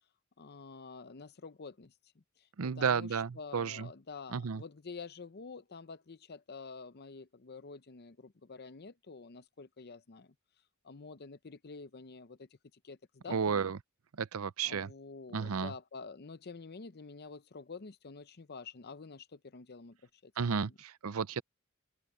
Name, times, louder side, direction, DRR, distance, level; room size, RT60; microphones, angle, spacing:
voice 1, 0.4-2.2 2.6-10.3 10.8-12.5 12.8-13.7 14.6-20.0 20.2-20.8, left 4 dB, 50° left, 0.7 m, -48 dB
voice 2, 2.6-3.9 4.3-4.6 13.3-13.8 14.2-14.9 15.3-15.7 20.4-21.4, right 6 dB, 80° right, 0.6 m, -32 dB
head